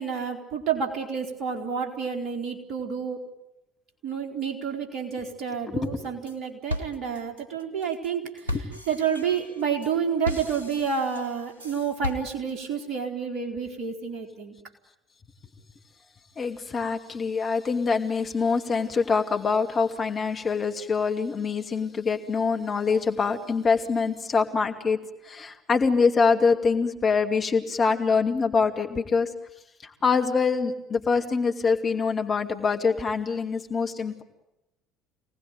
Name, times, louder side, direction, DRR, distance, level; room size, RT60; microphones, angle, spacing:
voice 1, 0.0-3.2 4.0-14.6 30.0-30.1, right 6 dB, 50° right, 4 dB, 4.4 m, -29 dB
voice 2, 5.7-6.0 8.5-8.6 16.4-25.0 25.2-29.3 29.8-34.2, left 5 dB, 30° left, 4 dB, 2.6 m, -24 dB
sound 1, 5.8-6.4 6.7-12.7, left 1 dB, 85° right, 1.2 m, -36 dB
26.5 x 19.0 x 9.3 m, 0.93 s
figure-of-eight pair, 60°, 0 cm